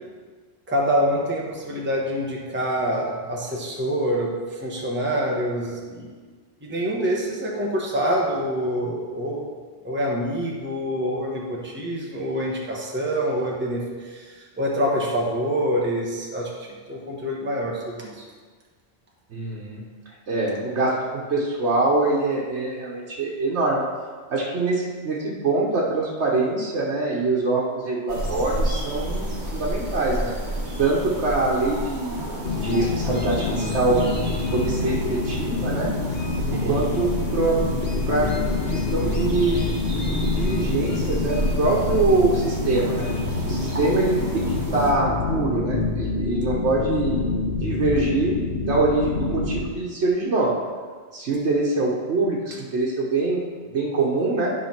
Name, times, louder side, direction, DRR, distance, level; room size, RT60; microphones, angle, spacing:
voice 1, 0.7-6.1 6.6-9.5 9.8-18.3 36.4-36.8 43.7-43.8, equal, 10° right, -3 dB, 1.0 m, -26 dB
voice 2, 19.3-19.8 20.3-23.8 24.3-30.4 30.8-34.0 34.5-35.9 36.6-37.6 38.1-38.4 38.7-39.7 40.0-43.1 43.5-47.3 47.6-50.5 51.1-54.5, right 2 dB, 90° right, -4 dB, 1.3 m, -24 dB
sound 1, 28.1-44.9, equal, 45° right, 1.3 m, -31 dB
sound 2, 32.4-49.6, left 3 dB, 70° left, 1.2 m, -27 dB
10.0 x 3.7 x 5.8 m, 1.5 s
omnidirectional pair, 1.1 m